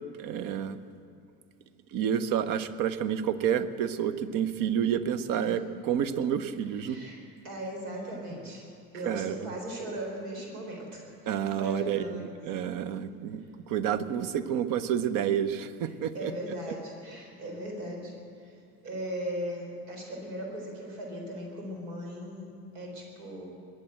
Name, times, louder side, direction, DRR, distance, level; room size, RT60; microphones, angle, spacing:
voice 1, 0.2-0.8 1.9-7.0 9.1-9.5 11.3-13.4 13.7-16.3, right 9 dB, 40° right, 14 dB, 0.8 m, -29 dB
voice 2, 6.7-7.2 7.4-8.7 8.9-12.3 16.1-18.2 18.4-18.6 18.8-22.5 22.7-23.4, right 1 dB, 65° right, 0 dB, 4.0 m, -38 dB
22.0 x 7.6 x 7.8 m, 2.4 s
figure-of-eight pair, 70°, 48 cm